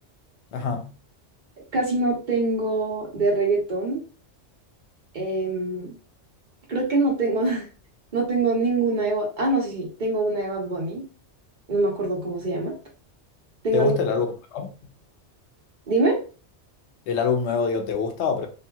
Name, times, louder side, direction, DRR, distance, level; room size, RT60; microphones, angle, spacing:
voice 1, 0.5-0.9 13.7-14.3 14.5-14.7 17.1-18.5, left 6 dB, 75° left, 0.9 m, -25 dB
voice 2, 1.7-4.0 5.1-5.9 6.7-7.7 8.1-11.0 11.7-12.8 13.6-14.0 15.9-16.2, right 2 dB, 45° right, 1.1 m, -24 dB
2.7 x 2.5 x 2.3 m
omnidirectional pair, 1.2 m